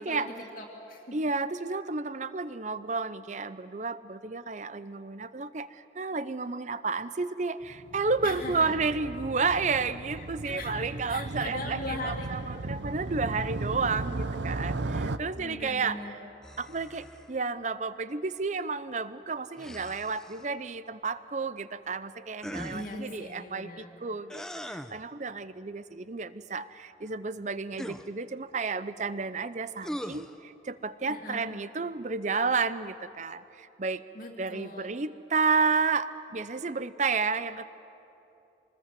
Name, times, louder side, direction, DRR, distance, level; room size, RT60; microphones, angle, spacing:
voice 1, 0.0-1.2 8.2-8.8 10.4-12.3 15.4-16.2 22.7-24.1 31.1-31.5 34.1-35.0, left 2 dB, 50° left, -3 dB, 2.1 m, -40 dB
voice 2, 1.1-16.2 16.6-34.0 34.4-37.7, right 4 dB, 40° right, 15 dB, 0.6 m, -31 dB
Motorcycle, 7.6-15.2, right 2 dB, 75° right, 0.7 m, -36 dB
sound 1, 16.4-17.4 19.6-20.5 22.4-23.0 24.3-25.0 27.7-28.1 29.8-30.3, equal, 5° left, 0.6 m, -40 dB
25.0 x 20.0 x 7.5 m, 2.9 s
head